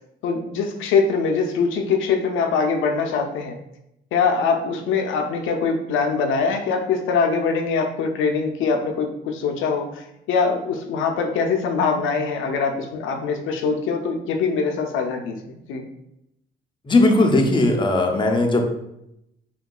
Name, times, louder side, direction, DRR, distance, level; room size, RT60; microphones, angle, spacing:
voice 1, 0.2-3.6 4.1-15.4 15.7-15.8, left 5 dB, 80° left, 4 dB, 0.4 m, -23 dB
voice 2, 16.9-18.6, left 2 dB, 25° left, 3 dB, 0.5 m, -18 dB
3.5 x 2.2 x 2.2 m, 0.82 s
cardioid pair, 90°, 20 cm